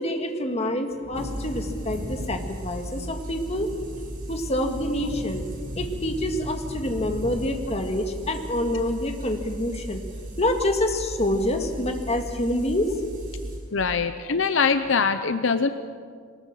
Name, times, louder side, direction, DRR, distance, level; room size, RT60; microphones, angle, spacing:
voice 1, 0.0-3.7 4.3-5.5 5.8-10.0 10.4-12.9, left 1 dB, 30° left, 4 dB, 1.9 m, -27 dB
Wind / Thunder, 0.9-9.1 9.4-9.5, equal, 75° right, 4.5 m, -39 dB
sound 1, 1.1-13.6, right 1 dB, 45° right, 5.9 m, -37 dB
voice 2, 13.7-15.7, left 5 dB, 65° left, 9 dB, 0.7 m, -23 dB
22.5 x 20.0 x 7.6 m, 2.1 s
head